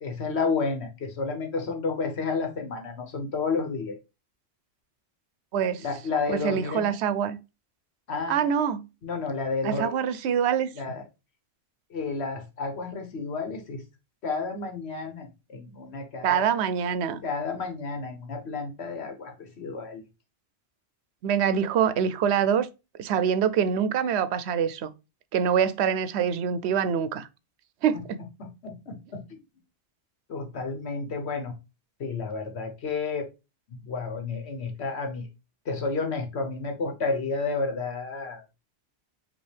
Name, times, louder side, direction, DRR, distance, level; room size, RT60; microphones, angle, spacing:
voice 1, 0.0-4.0 5.8-7.0 8.1-8.4 9.0-9.9 10.8-11.0 11.9-13.8 14.2-16.4 17.2-20.0 28.4-29.4 30.3-31.5 32.0-33.3 33.8-35.3 35.6-38.4, left 4 dB, 85° left, 1.4 m, -31 dB
voice 2, 5.5-5.8 6.3-7.4 8.3-8.8 9.6-10.7 16.2-17.2 21.2-22.7 23.0-24.9 25.3-27.3 27.8-28.2, right 8 dB, 85° right, 0.8 m, -25 dB
5.3 x 2.8 x 3.3 m
omnidirectional pair, 1.1 m